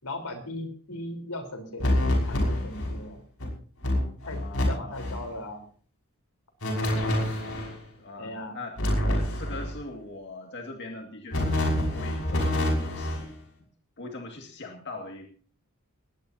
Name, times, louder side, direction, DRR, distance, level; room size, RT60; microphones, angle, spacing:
voice 1, 0.0-3.2 4.3-4.4 4.7-5.7 8.2-8.6, left 1 dB, 90° left, 6 dB, 4.0 m, -38 dB
sound 1, 1.8-3.0 3.4-3.5 3.8-4.6 4.9-5.2 6.6-7.7 8.8-9.8 11.3-13.3, left 1 dB, 70° left, 5.8 m, -27 dB
voice 2, 4.2-5.0 8.0-8.8 9.1-11.6 11.8-13.2 14.0-15.3, left 2 dB, 50° left, 2 dB, 2.1 m, -41 dB
19.5 x 17.5 x 2.8 m, 0.43 s
head